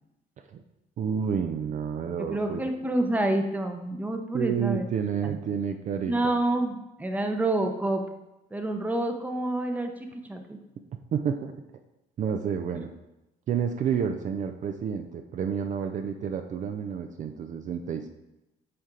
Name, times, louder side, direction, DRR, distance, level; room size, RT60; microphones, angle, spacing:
voice 1, 1.0-2.6 4.3-6.3 11.1-11.5 12.2-12.9 13.5-18.1, right 7 dB, 45° right, 6 dB, 0.5 m, -30 dB
voice 2, 2.2-4.8 5.2-5.4 6.1-8.0 8.5-10.6, right 1 dB, 10° right, 5 dB, 0.7 m, -28 dB
7.7 x 4.2 x 3.8 m, 0.96 s
cardioid pair, 110°, 17 cm